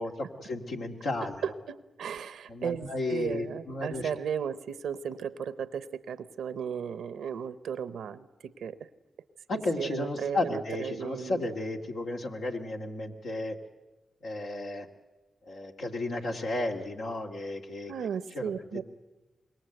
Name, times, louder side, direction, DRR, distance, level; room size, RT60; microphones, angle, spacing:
voice 1, 0.0-1.4 2.5-4.1 9.5-13.6 14.2-14.9 15.5-17.9 18.4-18.5, left 2 dB, 85° left, 0 dB, 2.0 m, -33 dB
voice 2, 1.4-8.9 9.8-11.5 17.9-18.9, right 7 dB, 90° right, 15 dB, 0.8 m, -35 dB
25.5 x 21.5 x 7.8 m, 1.1 s
supercardioid pair, 45°, 0 cm